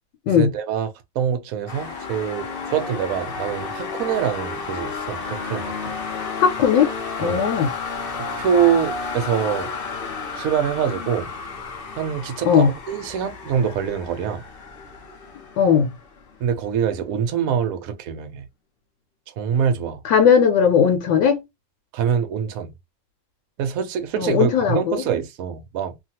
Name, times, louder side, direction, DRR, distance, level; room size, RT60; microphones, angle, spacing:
voice 1, 0.3-0.9 1.1-6.0 7.2-7.4 8.1-9.7 10.3-11.3 12.0-14.4 16.4-18.5 19.4-20.0 21.9-22.7 23.6-25.9, right 8 dB, 65° right, 0.9 m, -24 dB
sound 1, 1.7-16.5, left 4 dB, 55° left, 0.6 m, -32 dB
voice 2, 6.4-7.7 12.4-12.7 15.6-15.9 20.0-21.4 24.2-25.0, left 7 dB, 80° left, 1.3 m, -18 dB
2.8 x 2.4 x 2.8 m
omnidirectional pair, 2.0 m